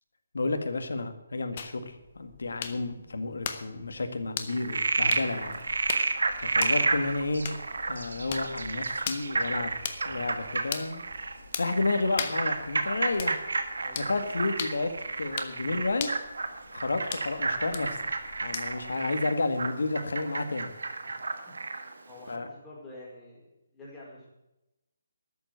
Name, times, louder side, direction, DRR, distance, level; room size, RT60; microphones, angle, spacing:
voice 1, 0.3-5.6 6.4-7.5 7.9-9.7 10.0-11.0 11.6-13.4 14.0-16.1 16.7-18.0 18.4-20.7 22.3-22.5, left 3 dB, 75° left, 8 dB, 1.9 m, -31 dB
sound 1, 1.6-19.0, left 7 dB, 40° left, 1.2 m, -40 dB
Frog, 4.5-21.9, right 3 dB, 75° right, 1.5 m, -31 dB
voice 2, 21.0-24.3, left 2 dB, 10° left, -6 dB, 5.0 m, -49 dB
13.0 x 7.7 x 8.1 m, 0.92 s
hypercardioid pair, 155°, 0 cm